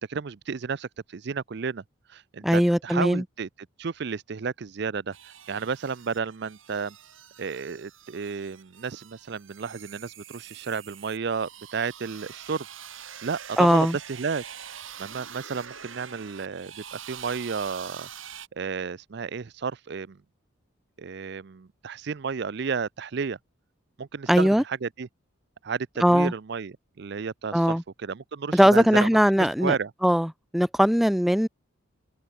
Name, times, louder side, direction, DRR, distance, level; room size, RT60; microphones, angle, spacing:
voice 1, 0.1-1.8 2.1-3.5 3.8-7.0 7.4-12.7 13.2-18.1 18.6-20.2 21.0-23.4 24.0-25.1 25.6-29.1 29.6-29.9, right 5 dB, 55° right, 0.5 m, -32 dB
voice 2, 2.4-3.2 13.6-14.0 24.3-24.6 26.0-26.3 27.5-27.8 28.5-29.8 30.0-31.5, equal, ahead, 0.5 m, -20 dB
sound 1, 5.1-18.5, right 9 dB, 75° right, 6.4 m, -45 dB
head